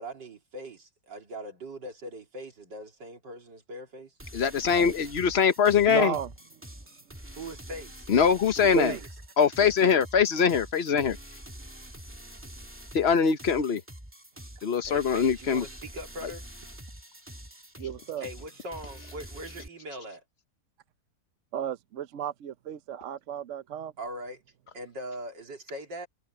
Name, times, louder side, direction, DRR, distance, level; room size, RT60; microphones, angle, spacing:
voice 1, 0.0-4.1 7.4-8.1 8.6-9.1 14.9-16.5 18.2-20.2 24.0-24.4 24.7-26.1, right 1 dB, 85° right, 3.7 m, -41 dB
sound 1, 4.2-19.7, right 1 dB, 5° right, 2.1 m, -46 dB
voice 2, 4.3-6.2 8.1-8.9 9.4-11.2 12.9-13.8 14.6-15.6, left 6 dB, 45° left, 1.0 m, -23 dB
voice 3, 5.9-6.3 8.7-9.0 17.8-18.3 21.5-23.9, right 10 dB, 60° right, 0.8 m, -33 dB
omnidirectional pair, 1.9 m